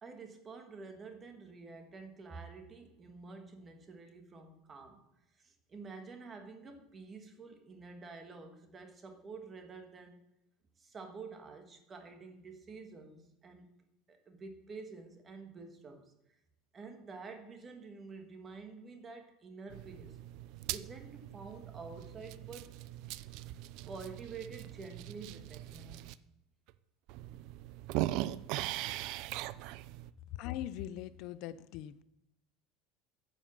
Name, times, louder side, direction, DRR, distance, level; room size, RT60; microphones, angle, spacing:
voice 1, 0.0-5.0 5.4-10.1 10.8-13.7 14.1-16.1 16.7-20.2 20.7-22.8 23.9-26.2, right 4 dB, 25° right, 5 dB, 1.5 m, -49 dB
sound 1, 19.7-26.1 26.7-26.8 27.1-30.1, right 15 dB, 60° right, 0.4 m, -40 dB
voice 2, 30.4-32.0, left 12 dB, 55° left, 15 dB, 0.5 m, -41 dB
9.7 x 5.5 x 7.2 m, 0.88 s
supercardioid pair, 145°, 0 cm